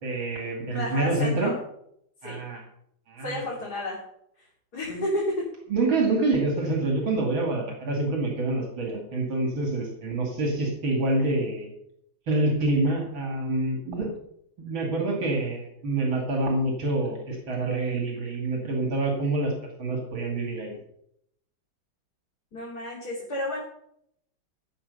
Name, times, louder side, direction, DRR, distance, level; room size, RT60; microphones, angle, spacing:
voice 1, 0.0-1.5 2.2-2.6 3.1-3.4 4.9-5.1 5.7-11.7 12.3-14.1 14.6-19.5 19.8-20.8, right 2 dB, 75° right, 1 dB, 3.2 m, -27 dB
voice 2, 0.7-1.5 2.2-2.4 3.2-4.0 4.4-4.5 4.7-5.5 22.5-23.6, left 1 dB, 50° left, -5 dB, 3.8 m, -31 dB
16.5 x 7.5 x 5.5 m, 0.73 s
omnidirectional pair, 2.2 m